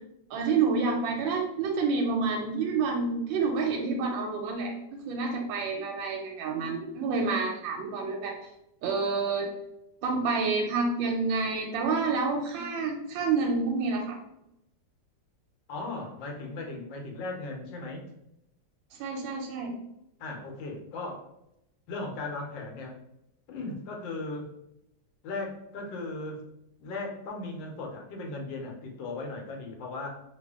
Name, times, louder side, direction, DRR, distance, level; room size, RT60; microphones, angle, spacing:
voice 1, 0.3-8.3 8.8-9.5 10.0-14.2 19.0-19.7, right 4 dB, 90° right, 1 dB, 1.3 m, -28 dB
voice 2, 15.7-18.0 20.2-21.2 21.9-22.9 23.5-24.5 25.2-26.4 26.8-30.1, left 2 dB, 80° left, 2 dB, 1.4 m, -37 dB
3.1 x 2.4 x 3.5 m, 0.83 s
omnidirectional pair, 2.0 m